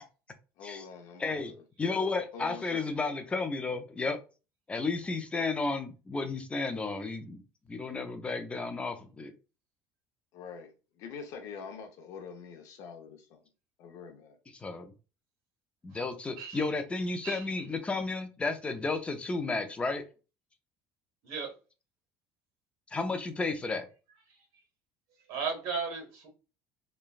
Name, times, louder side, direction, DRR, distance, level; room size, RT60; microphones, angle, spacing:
voice 1, 0.6-1.6 2.3-3.0 10.3-10.7 11.0-13.4 13.8-14.4, left 6 dB, 65° left, 0.7 m, -45 dB
voice 2, 1.2-1.5 1.8-4.2 4.7-7.4 7.7-9.3 14.6-14.9 15.8-20.0 22.9-23.9, left 3 dB, 20° left, 0.5 m, -32 dB
voice 3, 16.4-16.7 17.2-17.4 21.2-21.5 25.3-26.3, right 5 dB, 75° right, 1.2 m, -35 dB
3.1 x 2.2 x 2.3 m
supercardioid pair, 110°, 6 cm